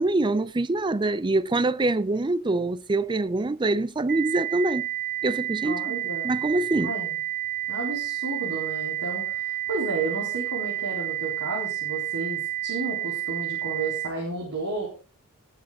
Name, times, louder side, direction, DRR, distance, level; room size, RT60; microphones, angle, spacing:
voice 1, 0.0-4.9 5.2-6.0 6.2-6.9, right 2 dB, 20° right, 0.5 m, -25 dB
sound 1, 4.1-14.1, right 14 dB, 50° right, 2.3 m, -30 dB
voice 2, 5.6-6.3 6.8-7.2 7.7-14.9, right 3 dB, 80° right, 4.1 m, -32 dB
19.0 x 7.3 x 3.8 m
head